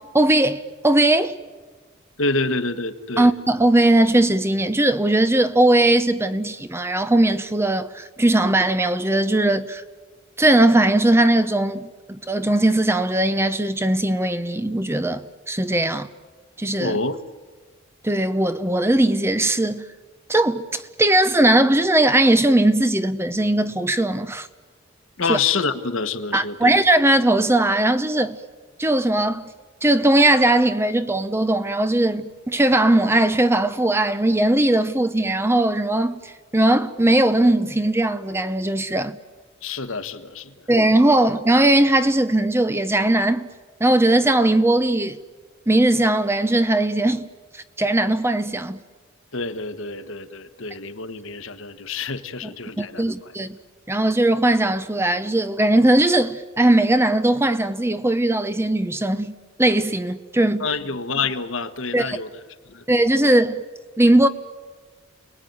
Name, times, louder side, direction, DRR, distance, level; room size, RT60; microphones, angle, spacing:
voice 1, 0.1-1.3 3.2-9.8 10.4-16.1 16.6-17.0 18.0-19.8 20.3-24.5 25.3-25.4 26.3-28.4 28.8-29.5 29.8-39.2 40.7-43.4 43.8-45.2 45.7-47.3 47.5-48.8 52.8-53.6 53.9-60.7 61.9-62.2 62.9-63.6 64.0-64.3, right 1 dB, 10° right, 0.7 m, -19 dB
voice 2, 2.2-3.3 16.8-17.2 25.2-26.7 39.6-40.5 49.3-53.0 60.6-62.3 62.7-62.8, left 4 dB, 70° left, 1.4 m, -27 dB
30.0 x 20.5 x 9.5 m
head